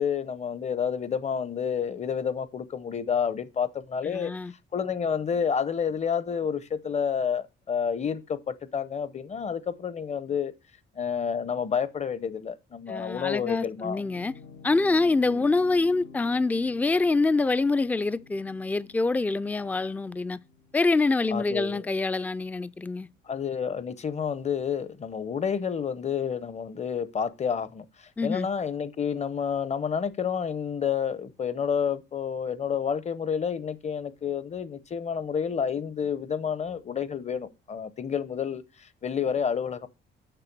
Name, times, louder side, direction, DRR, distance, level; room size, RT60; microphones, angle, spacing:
voice 1, 0.0-4.3 4.7-10.5 11.0-14.0 15.2-15.5 21.3-21.9 23.3-39.9, left 7 dB, 35° left, 0.7 m, -29 dB
voice 2, 4.1-4.5 12.9-14.3 14.6-20.4 20.7-23.1 28.2-28.5, left 3 dB, 10° left, 0.3 m, -25 dB
sound 1, 13.9-22.7, left 5 dB, 90° left, 2.0 m, -49 dB
6.8 x 5.7 x 5.9 m
cardioid pair, 90°, 20 cm